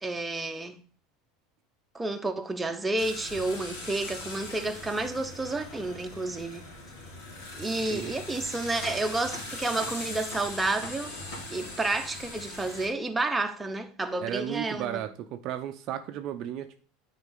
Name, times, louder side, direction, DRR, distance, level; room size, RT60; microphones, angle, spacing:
voice 1, 0.0-0.7 1.9-6.6 7.6-11.1 11.5-15.0, right 2 dB, 10° right, 0.9 m, -30 dB
sound 1, 3.0-12.9, left 2 dB, 65° left, 3.0 m, -40 dB
voice 2, 14.2-16.8, right 11 dB, 50° right, 0.6 m, -34 dB
9.4 x 4.2 x 4.0 m
figure-of-eight pair, 75°, 0 cm